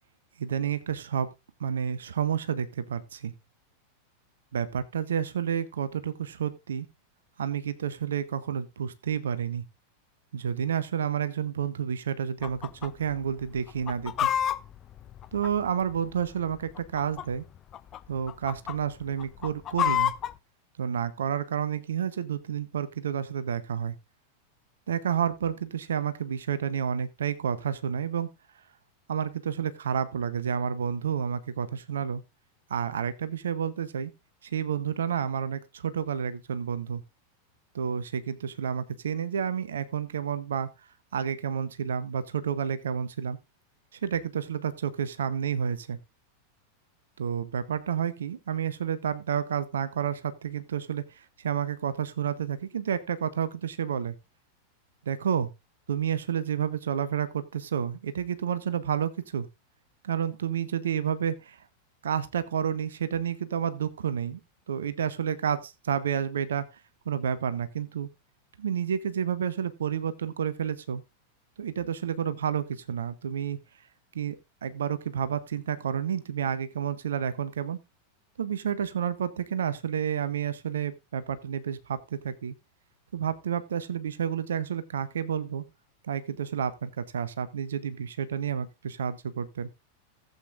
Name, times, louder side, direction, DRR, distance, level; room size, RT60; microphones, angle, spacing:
voice 1, 0.4-1.3 1.6-3.3 4.5-6.9 7.4-9.6 10.3-14.3 15.3-17.4 18.1-20.1 20.8-23.9 24.9-28.3 29.1-32.2 32.7-34.1 34.4-37.0 37.7-40.7 41.1-43.4 43.9-46.0 47.2-54.1 55.1-55.5 55.9-59.5 60.0-61.6 62.0-64.4 64.7-66.8 67.1-68.1 68.6-71.0 71.6-73.6 74.1-74.4 74.6-77.8 78.4-82.5 83.1-85.6 86.0-89.7, right 8 dB, 65° right, 0.8 m, -30 dB
Chicken rooster, 12.4-12.9 13.2-13.3 13.7-16.0 16.7-17.4 17.7-18.0 18.3-18.7 19.2-20.3, left 10 dB, 30° left, 0.5 m, -28 dB
16.0 x 8.1 x 2.5 m
figure-of-eight pair, 90°, 0 cm